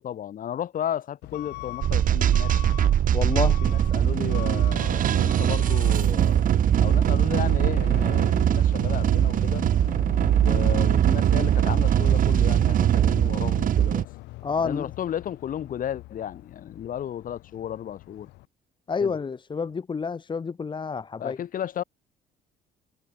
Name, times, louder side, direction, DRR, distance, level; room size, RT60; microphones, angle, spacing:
voice 1, 0.0-2.5 3.4-6.5 6.8-9.6 10.4-14.0 14.6-18.3 19.0-19.1 21.2-21.8, left 10 dB, 55° left, 4.7 m, -34 dB
Truck / Alarm, 1.2-18.5, left 20 dB, 90° left, 2.0 m, -41 dB
sound 1, 1.8-14.0, right 10 dB, 55° right, 1.6 m, -21 dB
voice 2, 3.1-3.6 14.4-14.9 18.9-21.4, left 5 dB, 30° left, 2.0 m, -29 dB
cardioid pair, 110°, 17 cm